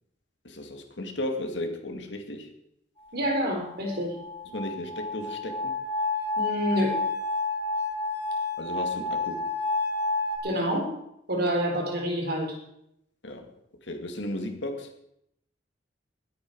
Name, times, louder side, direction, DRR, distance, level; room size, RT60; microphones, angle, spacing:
voice 1, 0.4-2.5 4.5-5.8 8.6-9.5 13.2-13.5 13.8-14.9, left 1 dB, 70° left, 2.1 m, -35 dB
voice 2, 3.1-4.2 6.4-7.0 10.4-10.9 11.3-12.6, equal, 60° right, 4.0 m, -27 dB
sound 1, 3.2-10.4, left 3 dB, 30° left, 3.3 m, -30 dB
20.0 x 9.2 x 4.7 m
head